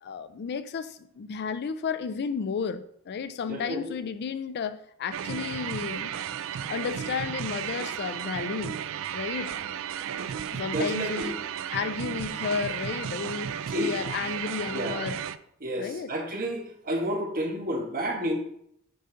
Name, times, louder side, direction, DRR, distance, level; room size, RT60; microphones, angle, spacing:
voice 1, 0.0-6.1 6.7-8.8 9.1-9.5 10.5-11.3 11.7-15.2 15.8-16.1, left 6 dB, 50° left, 0.4 m, -33 dB
voice 2, 3.4-4.0 10.7-11.4 13.7-14.0 14.7-15.1 15.6-18.3, equal, 45° right, 1.3 m, -30 dB
sound 1, 5.1-15.4, right 9 dB, 65° right, 0.4 m, -34 dB
7.9 x 5.0 x 3.8 m
head